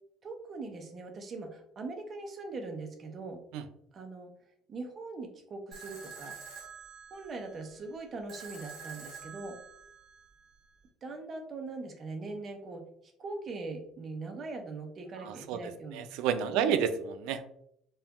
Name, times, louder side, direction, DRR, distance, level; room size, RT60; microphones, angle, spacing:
voice 1, 0.2-3.4 3.9-4.3 4.7-6.4 7.1-9.6 11.0-16.0 16.5-16.7, right 3 dB, 25° right, 4 dB, 0.6 m, -41 dB
sound 1, 5.7-10.7, right 5 dB, 50° right, 1.5 m, -48 dB
voice 2, 15.2-15.6 15.9-17.4, right 8 dB, 75° right, 11 dB, 0.4 m, -30 dB
5.4 x 2.3 x 2.9 m, 0.73 s
cardioid pair, 175°, 0 cm